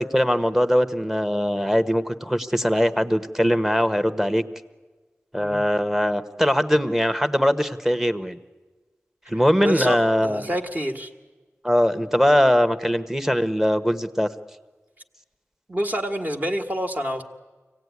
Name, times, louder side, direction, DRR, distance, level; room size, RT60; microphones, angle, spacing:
voice 1, 0.0-4.4 5.3-8.4 9.3-10.4 11.6-14.3, equal, 5° right, 10 dB, 1.0 m, -21 dB
voice 2, 9.3-10.0 10.2-11.1 15.7-17.2, equal, 35° right, 3 dB, 1.7 m, -27 dB
25.0 x 17.0 x 9.5 m, 1.3 s
wide cardioid pair, 65°, 5 cm